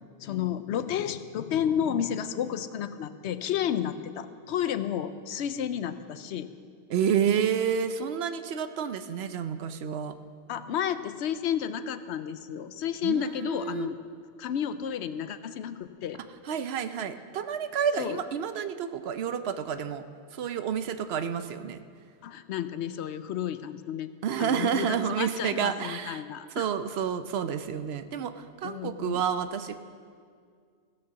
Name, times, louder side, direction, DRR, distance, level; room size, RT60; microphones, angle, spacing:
voice 1, 0.2-6.5 10.5-14.0 14.4-16.2 18.0-18.2 22.2-24.1 24.4-26.7 28.6-29.2, left 9 dB, 80° left, 12 dB, 0.9 m, -31 dB
voice 2, 6.9-10.2 13.0-13.9 16.4-20.0 20.3-21.8 24.2-26.2 26.6-29.8, right 8 dB, 70° right, 10 dB, 0.8 m, -29 dB
16.0 x 6.6 x 6.9 m, 2.1 s
omnidirectional pair, 1.1 m